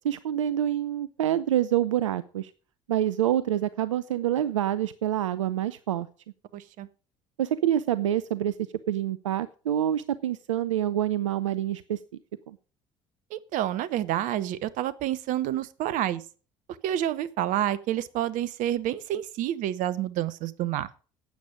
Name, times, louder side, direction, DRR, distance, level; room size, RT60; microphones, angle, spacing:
voice 1, 0.0-2.5 2.9-6.1 7.4-8.5 8.9-12.0 12.5-12.6, right 11 dB, 80° right, 16 dB, 0.5 m, -26 dB
voice 2, 6.5-6.9 13.3-16.2 16.8-20.9, right 12 dB, 55° right, 18 dB, 0.9 m, -29 dB
12.5 x 8.7 x 5.1 m, 0.38 s
figure-of-eight pair, 60°, 16 cm